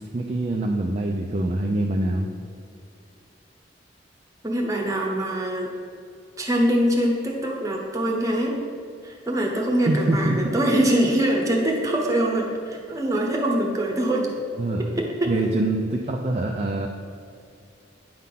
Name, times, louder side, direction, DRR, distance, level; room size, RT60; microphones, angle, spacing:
voice 1, 0.1-2.3 9.9-10.4 14.6-14.9 15.3-16.9, right 2 dB, 35° right, 0 dB, 0.5 m, -24 dB
voice 2, 4.4-5.7 6.4-8.6 9.0-14.3 14.8-15.3, right 1 dB, 20° right, 0 dB, 1.0 m, -23 dB
9.4 x 3.7 x 5.8 m, 2.4 s
head